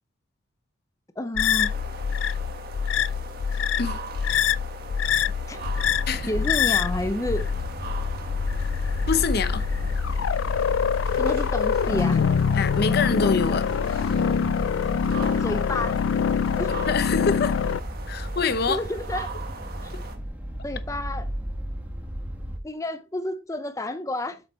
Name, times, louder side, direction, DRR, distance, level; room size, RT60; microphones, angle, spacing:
voice 1, 1.2-1.8 5.5-5.6 6.3-7.5 11.2-12.3 15.4-16.0 16.5-16.8 18.7-19.3 19.8-19.9 20.6-21.3 22.6-24.4, left 1 dB, 15° left, 0.6 m, -30 dB
sound 1, 1.4-17.8, left 7 dB, 75° left, 0.3 m, -25 dB
sound 2, 1.6-20.2, right 4 dB, 50° right, 1.6 m, -40 dB
sound 3, 5.6-22.6, equal, 10° right, 1.3 m, -35 dB
voice 2, 9.1-9.6 12.5-13.7 16.9-17.6 18.1-18.8, left 5 dB, 55° left, 0.7 m, -25 dB
8.0 x 6.9 x 3.2 m
head